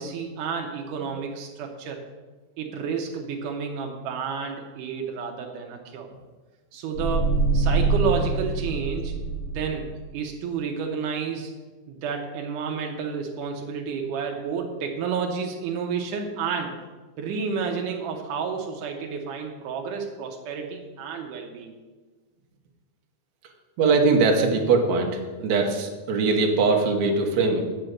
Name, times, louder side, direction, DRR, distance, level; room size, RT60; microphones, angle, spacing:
voice 1, 0.0-2.0 2.6-6.1 6.7-9.1 9.5-11.5 11.9-16.7 17.2-21.7, right 6 dB, 85° right, 2 dB, 2.6 m, -30 dB
sound 1, 6.9-10.1, right 3 dB, 50° left, 2.2 m, -25 dB
voice 2, 23.8-27.6, right 4 dB, 70° right, 1 dB, 2.5 m, -21 dB
8.6 x 6.7 x 7.8 m, 1.3 s
omnidirectional pair, 3.6 m